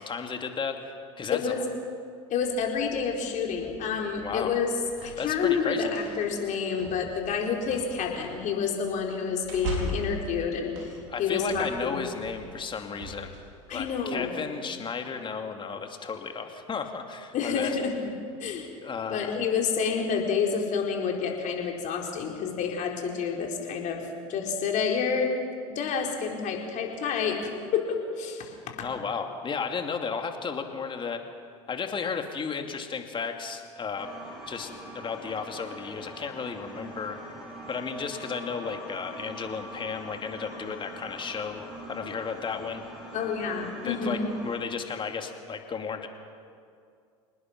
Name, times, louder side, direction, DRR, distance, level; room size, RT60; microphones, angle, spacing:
voice 1, 0.0-1.5 4.2-4.6 5.2-5.9 11.1-13.4 13.7-17.7 18.8-19.4 28.8-31.2 31.7-34.1 34.5-34.7 34.9-37.2 37.7-42.8 43.8-46.1, left 5 dB, 30° left, 5 dB, 2.5 m, -34 dB
voice 2, 1.3-1.6 2.3-4.7 5.0-10.9 11.2-12.0 13.7-14.4 17.3-17.9 18.4-18.7 19.1-24.0 24.3-25.3 25.7-28.8 43.1-44.3, left 6 dB, 50° left, 1 dB, 4.4 m, -29 dB
sound 1, 2.4-13.9, right 2 dB, 70° right, 4.7 m, -40 dB
sound 2, 34.0-44.6, right 1 dB, 5° right, 7.5 m, -43 dB
26.5 x 19.5 x 6.1 m, 2.3 s
hypercardioid pair, 75°, 17 cm